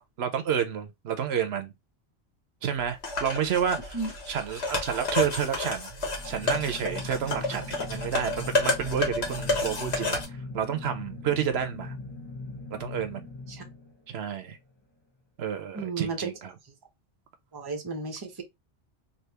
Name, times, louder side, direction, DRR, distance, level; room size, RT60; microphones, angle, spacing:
voice 1, 0.2-1.7 2.6-4.0 4.3-5.9 6.2-12.0 12.7-13.3 14.1-14.6 15.4-16.5, right 8 dB, 75° right, 0.9 m, -30 dB
sound 1, 3.0-10.2, left 3 dB, 80° left, 1.4 m, -30 dB
sound 2, 5.9-14.3, left 2 dB, 25° left, 0.9 m, -40 dB
voice 2, 15.7-16.3 17.5-18.4, right 3 dB, 25° right, 0.7 m, -33 dB
3.4 x 2.7 x 2.8 m
omnidirectional pair, 1.1 m